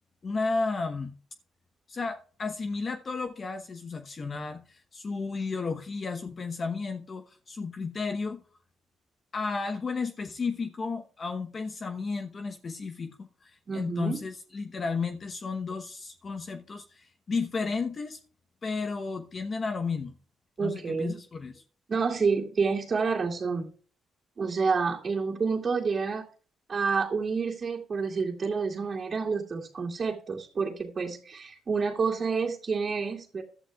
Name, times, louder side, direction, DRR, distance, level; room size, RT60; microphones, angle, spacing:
voice 1, 0.2-1.1 1.9-8.4 9.3-18.2 18.6-20.2 20.6-21.6, left 4 dB, 40° left, 7 dB, 1.0 m, -33 dB
voice 2, 13.7-14.2 20.6-21.2 21.9-23.7 24.4-26.2 26.7-33.4, right 5 dB, 40° right, -3 dB, 2.4 m, -29 dB
15.5 x 11.5 x 2.4 m, 0.40 s
cardioid pair, 90°, 0 cm